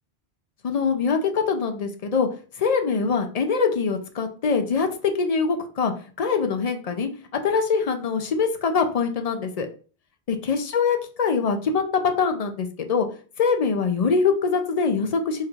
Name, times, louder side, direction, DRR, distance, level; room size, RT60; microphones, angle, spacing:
voice 1, 0.6-2.3 2.6-5.9 6.2-7.1 7.4-9.7 10.3-11.8 12.2-13.1 13.4-15.5, left 5 dB, 50° left, 5 dB, 0.5 m, -23 dB
4.4 x 3.1 x 2.4 m, 0.38 s
omnidirectional pair, 1.1 m